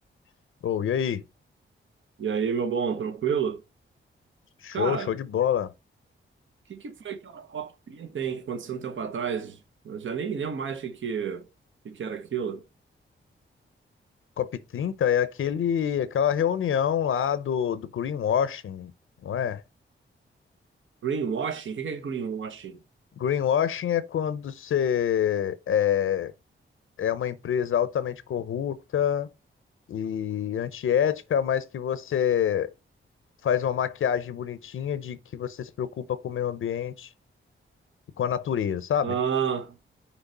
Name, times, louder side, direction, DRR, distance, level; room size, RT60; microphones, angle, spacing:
voice 1, 0.6-1.2 4.6-5.7 14.4-18.9 19.2-19.6 23.2-26.3 27.0-29.3 29.9-32.7 33.4-37.1 38.2-39.1, left 9 dB, 80° left, 0.6 m, -26 dB
voice 2, 2.2-3.6 4.7-5.1 6.7-9.6 9.8-11.5 11.8-12.6 21.0-22.8 39.0-39.8, right 7 dB, 70° right, 0.9 m, -30 dB
6.1 x 3.2 x 5.4 m
wide cardioid pair, 105°, 21 cm